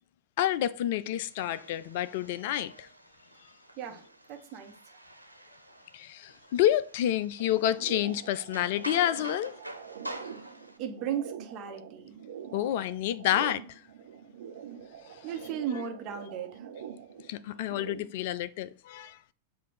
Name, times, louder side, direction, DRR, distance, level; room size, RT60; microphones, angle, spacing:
voice 1, 0.4-2.9 5.9-9.6 12.5-13.8 15.1-15.2 17.3-19.2, left 12 dB, 50° left, 0.3 m, -29 dB
sound 1, 1.3-10.8, right 1 dB, 90° left, 0.6 m, -47 dB
voice 2, 4.3-5.0 10.8-12.2 15.2-16.7, right 8 dB, 35° right, 1.1 m, -36 dB
sound 2, 7.4-18.2, right 8 dB, 60° right, 0.7 m, -45 dB
7.5 x 2.6 x 5.1 m
figure-of-eight pair, 90°, 0 cm